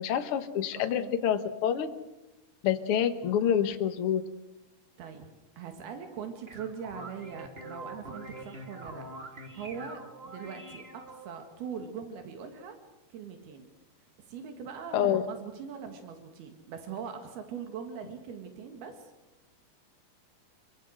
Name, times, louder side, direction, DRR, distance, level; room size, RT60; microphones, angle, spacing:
voice 1, 0.0-1.9 2.6-4.2 14.9-15.2, left 9 dB, 55° left, 8 dB, 1.6 m, -27 dB
voice 2, 5.6-12.8 13.1-13.7 14.2-19.1, right 7 dB, 85° right, 5 dB, 3.9 m, -41 dB
sound 1, 6.2-11.5, right 1 dB, 25° right, 1.4 m, -45 dB
26.5 x 23.5 x 6.4 m, 0.99 s
omnidirectional pair, 4.3 m